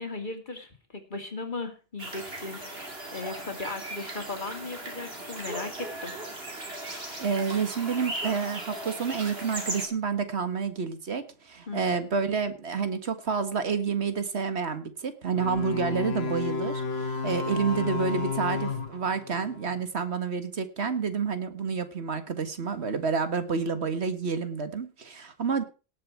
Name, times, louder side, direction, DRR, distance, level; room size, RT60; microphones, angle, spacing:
voice 1, 0.0-6.1 11.7-11.9, left 3 dB, 50° left, 6 dB, 2.7 m, -37 dB
sound 1, 2.0-9.9, right 1 dB, 65° right, 3.3 m, -37 dB
voice 2, 7.2-25.6, right 5 dB, 90° right, 10 dB, 1.8 m, -29 dB
sound 2, 15.3-19.8, left 5 dB, 75° left, 1.8 m, -32 dB
18.5 x 7.5 x 4.6 m, 0.33 s
omnidirectional pair, 1.1 m